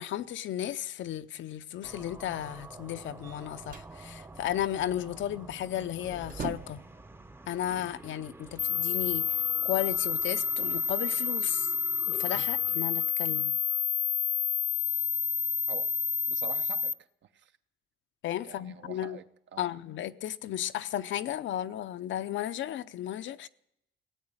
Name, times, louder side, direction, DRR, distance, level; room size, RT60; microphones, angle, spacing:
voice 1, 0.0-6.8 7.5-9.4 9.6-11.7 12.1-13.5 18.2-19.2 19.6-23.5, left 12 dB, 70° left, 0.7 m, -34 dB
sound 1, 1.8-13.8, right 2 dB, 10° right, 0.7 m, -48 dB
sound 2, 3.2-4.0 5.6-5.8 6.1-7.0, right 7 dB, 45° right, 0.8 m, -41 dB
sound 3, 8.6-16.9, left 7 dB, 30° left, 0.7 m, -29 dB
voice 2, 16.3-17.5 18.4-19.2 19.5-19.7, right 8 dB, 65° right, 1.0 m, -46 dB
17.0 x 8.7 x 8.9 m
cardioid pair, 90°, 20 cm